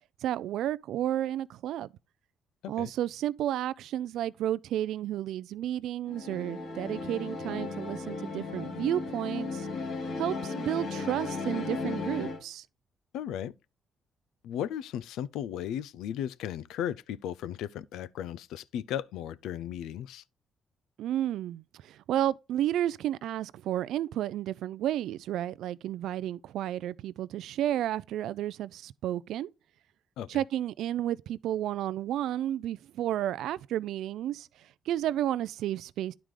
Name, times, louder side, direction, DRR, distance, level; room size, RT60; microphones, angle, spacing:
voice 1, 0.2-1.9 2.7-9.7 10.2-12.7 21.0-29.5 30.3-34.5 34.9-36.1, right 12 dB, 80° right, 0.3 m, -32 dB
sound 1, 6.1-12.4, left 3 dB, 70° left, 2.5 m, -35 dB
voice 2, 13.1-13.5 14.4-20.2 30.2-30.4, left 10 dB, 85° left, 0.4 m, -36 dB
10.5 x 4.8 x 3.7 m
cardioid pair, 90°, 0 cm